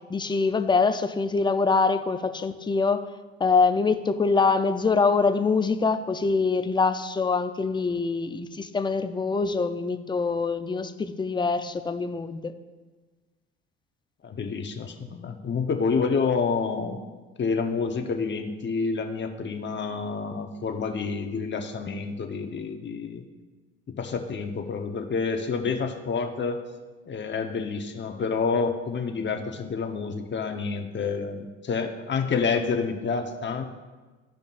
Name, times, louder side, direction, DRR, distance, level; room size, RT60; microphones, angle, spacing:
voice 1, 0.1-3.0 3.4-12.5, left 4 dB, 15° left, 9 dB, 0.6 m, -24 dB
voice 2, 14.2-17.0 17.4-23.2 24.0-26.7 27.1-33.6, left 5 dB, 35° left, 5 dB, 1.0 m, -28 dB
14.5 x 5.2 x 2.5 m, 1.3 s
hypercardioid pair, 70°, 31 cm